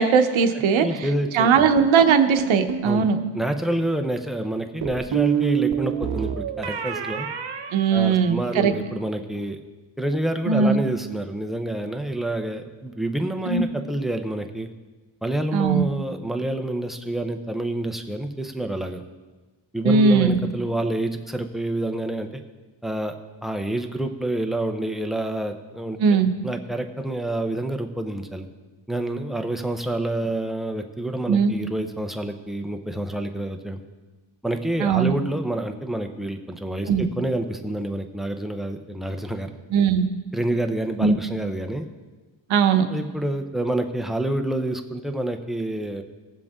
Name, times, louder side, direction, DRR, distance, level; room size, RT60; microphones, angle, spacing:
voice 1, 0.0-0.9 1.3-3.2 7.7-8.7 10.5-10.8 13.4-13.6 15.5-15.8 19.8-20.4 26.0-26.3 31.3-31.5 34.8-35.1 36.9-37.1 39.7-40.1 41.0-41.1 42.5-42.8, right 6 dB, 85° right, 7 dB, 1.1 m, -19 dB
voice 2, 0.8-1.7 2.8-3.1 3.3-7.3 7.9-9.6 10.0-14.7 15.2-19.0 19.7-22.4 22.8-23.1 23.4-26.2 26.4-28.5 28.9-33.8 34.4-39.5 40.3-41.9 42.9-46.0, right 1 dB, ahead, 5 dB, 0.7 m, -28 dB
sound 1, 2.1-2.9 4.8-8.6, right 9 dB, 60° right, 0.9 m, -27 dB
19.0 x 7.6 x 3.7 m, 1.3 s
wide cardioid pair, 140°, 46 cm